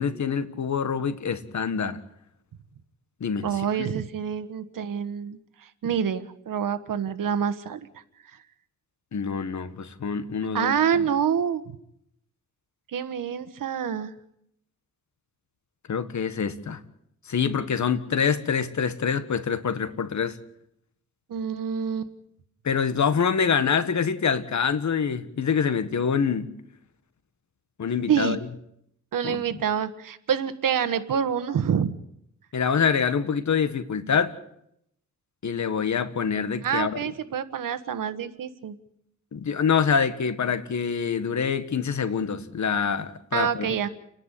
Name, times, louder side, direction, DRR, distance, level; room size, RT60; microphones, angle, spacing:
voice 1, 0.0-2.0 3.2-3.9 9.1-11.1 15.9-16.8 17.3-20.4 22.6-26.5 27.8-28.4 29.2-29.4 32.5-34.3 35.4-37.0 39.3-43.7, left 6 dB, 60° left, 12 dB, 1.7 m, -25 dB
voice 2, 3.4-5.4 5.8-7.9 10.5-11.6 12.9-14.1 21.3-22.1 28.1-28.4 29.1-31.9 36.6-38.7 43.3-43.9, right 8 dB, 85° right, 12 dB, 1.5 m, -27 dB
30.0 x 10.5 x 9.9 m, 0.77 s
cardioid pair, 90°, 32 cm